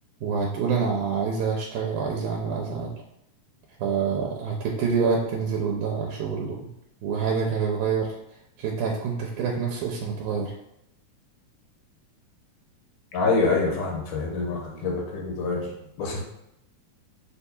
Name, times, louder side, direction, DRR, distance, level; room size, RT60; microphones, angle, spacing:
voice 1, 0.2-2.9 3.8-6.7 7.0-8.1 8.6-10.5, right 5 dB, 90° right, -1 dB, 2.1 m, -27 dB
voice 2, 13.1-16.2, left 3 dB, 85° left, 0 dB, 2.3 m, -26 dB
6.6 x 2.3 x 2.7 m, 0.83 s
omnidirectional pair, 3.5 m